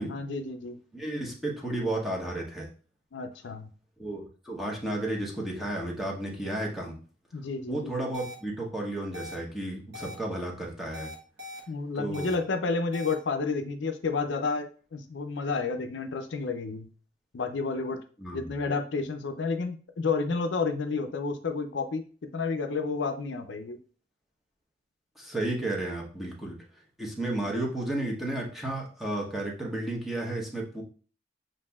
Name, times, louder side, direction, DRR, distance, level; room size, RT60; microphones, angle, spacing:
voice 1, 0.0-0.8 3.1-3.7 7.3-7.9 11.7-16.9 17.3-18.0 18.3-22.0 22.3-23.8, left 4 dB, 70° left, 7 dB, 0.5 m, -30 dB
voice 2, 0.9-2.7 4.0-7.0 7.7-11.1 11.9-12.4 18.2-18.6 25.2-26.6 27.0-30.8, right 1 dB, ahead, -3 dB, 0.9 m, -33 dB
sound 1, 8.1-8.3 9.1-9.3 9.9-10.1 10.9-11.6 12.1-12.3 12.9-13.1, left 2 dB, 65° right, 1.0 m, -41 dB
7.3 x 2.6 x 2.3 m, 0.39 s
head